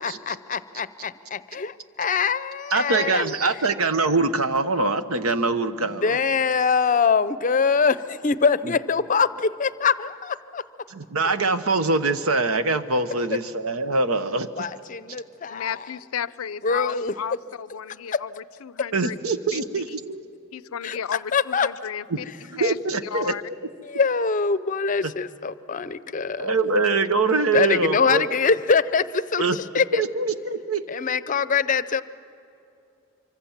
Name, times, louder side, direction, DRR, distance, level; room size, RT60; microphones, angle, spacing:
voice 1, 0.0-3.3 5.8-10.6 14.6-15.9 16.6-17.1 18.1-18.2 20.8-21.0 21.3-21.7 23.8-26.5 27.5-30.0 30.9-32.0, left 5 dB, 35° left, 15 dB, 0.5 m, -23 dB
voice 2, 2.7-6.2 8.6-8.7 10.9-14.5 18.9-20.2 22.1-22.2 22.5-23.3 25.0-25.1 26.4-28.3 29.4-29.6 29.9-30.8, right 3 dB, 90° right, 10 dB, 1.1 m, -23 dB
voice 3, 15.5-19.2 19.5-19.6 19.9-20.0 20.5-22.3 22.6-22.8 23.0-23.4, left 8 dB, 85° left, 18 dB, 0.5 m, -33 dB
25.5 x 24.5 x 7.3 m, 2.7 s
head